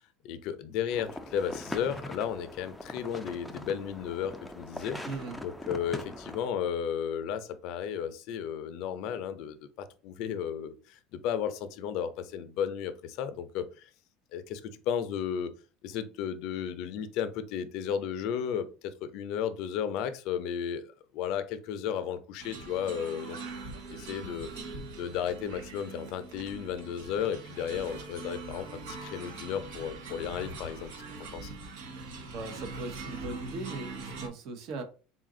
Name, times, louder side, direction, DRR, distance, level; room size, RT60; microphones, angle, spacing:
voice 1, 0.2-13.9 14.3-15.5 15.8-23.4 23.9-30.9 31.3-31.5, left 8 dB, 60° left, 0.5 m, -34 dB
sound 1, 0.9-6.5, left 1 dB, 5° left, 0.4 m, -42 dB
voice 2, 5.1-5.4 32.3-34.8, right 3 dB, 50° right, 0.8 m, -39 dB
sound 2, 22.4-34.3, right 3 dB, 85° right, 1.0 m, -42 dB
3.8 x 2.4 x 3.7 m
supercardioid pair, 140°, 0 cm